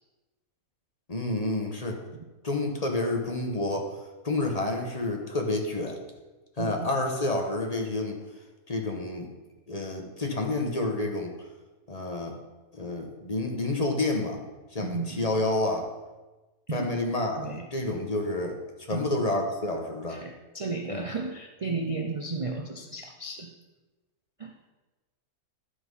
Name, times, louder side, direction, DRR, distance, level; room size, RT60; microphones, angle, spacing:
voice 1, 1.1-2.0 2.4-4.0 4.2-6.0 6.6-8.2 8.7-9.3 9.7-11.3 11.9-12.4 12.7-14.4 14.7-15.9 16.7-20.2 20.9-21.0, left 2 dB, 30° left, 2 dB, 1.1 m, -29 dB
voice 2, 6.6-6.9 14.8-15.2 16.7-16.9 17.4-17.7 18.9-19.1 20.1-23.5 24.4-24.5, right 3 dB, 55° right, 3 dB, 0.3 m, -34 dB
11.5 x 6.1 x 5.5 m, 1.2 s
omnidirectional pair, 1.6 m